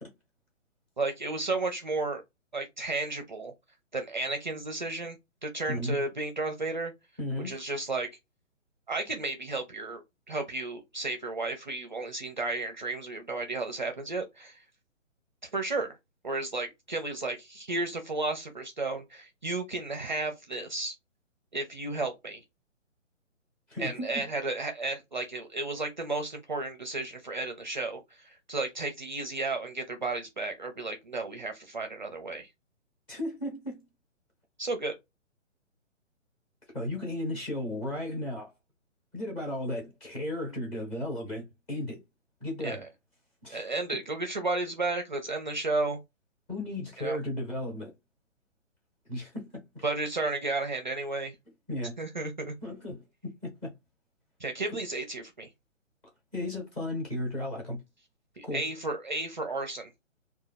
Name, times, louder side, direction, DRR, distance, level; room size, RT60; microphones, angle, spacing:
voice 1, 1.0-2.2 2.5-3.5 3.9-5.2 5.4-6.9 7.4-8.1 8.9-14.6 15.5-16.0 16.2-20.9 21.5-22.4 23.8-32.5 34.6-34.9 42.6-42.8 43.5-46.0 47.0-47.2 49.8-51.4 52.0-52.5 54.4-55.5 58.4-59.9, right 3 dB, 40° right, 0.5 m, -33 dB
voice 2, 5.7-6.0 7.2-7.5 23.7-24.2 33.1-33.8 36.7-38.5 39.1-42.0 42.4-42.8 43.4-43.6 46.5-47.9 49.1-49.8 51.7-52.0 52.6-53.0 53.4-53.7 56.3-57.8 58.4-58.6, left 1 dB, 10° left, 0.8 m, -34 dB
2.9 x 2.3 x 4.0 m
figure-of-eight pair, 135°, 38 cm